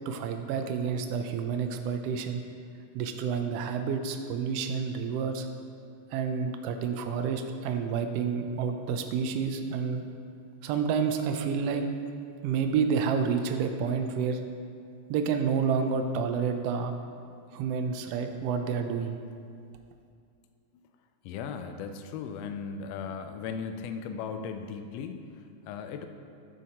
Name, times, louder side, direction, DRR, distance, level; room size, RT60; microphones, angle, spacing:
voice 1, 0.1-2.4 2.9-5.5 6.1-10.0 10.6-11.8 12.4-14.4 15.1-16.9 17.5-19.2, right 6 dB, 80° right, 6 dB, 1.4 m, -29 dB
voice 2, 21.2-26.1, left 6 dB, 80° left, 7 dB, 1.5 m, -37 dB
14.0 x 7.3 x 2.9 m, 2.3 s
omnidirectional pair, 3.4 m